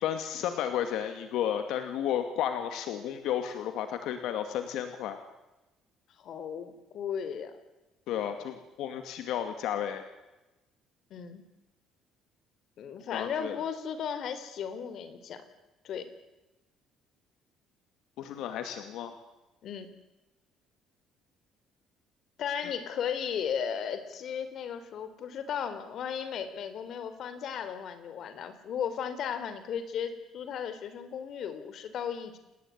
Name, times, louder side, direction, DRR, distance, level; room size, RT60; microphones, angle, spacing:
voice 1, 0.0-5.2 8.1-10.0 13.1-13.6 18.2-19.1, left 10 dB, 70° left, 8 dB, 2.5 m, -32 dB
voice 2, 6.2-7.5 11.1-11.4 12.8-15.4 15.8-16.1 19.6-19.9 22.4-32.4, left 7 dB, 50° left, 11 dB, 3.5 m, -35 dB
29.5 x 19.5 x 9.7 m, 1.0 s
cardioid pair, 165°, 0 cm